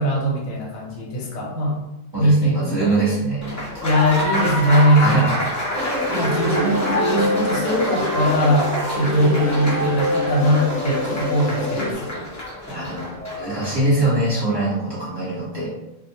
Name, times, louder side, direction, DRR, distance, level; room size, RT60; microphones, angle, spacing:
voice 1, 0.0-1.8 2.2-3.0 3.8-5.3 6.1-12.2, equal, 80° left, -1 dB, 1.0 m, -20 dB
voice 2, 2.1-3.5 5.0-5.4 5.8-6.1 12.7-13.1 13.4-15.7, right 2 dB, 20° right, -10 dB, 1.0 m, -23 dB
Applause, 3.4-13.8, left 1 dB, 25° left, 0.4 m, -28 dB
sound 1, 5.7-11.9, equal, 55° right, 0.8 m, -25 dB
2.3 x 2.1 x 2.7 m, 0.91 s
omnidirectional pair, 1.4 m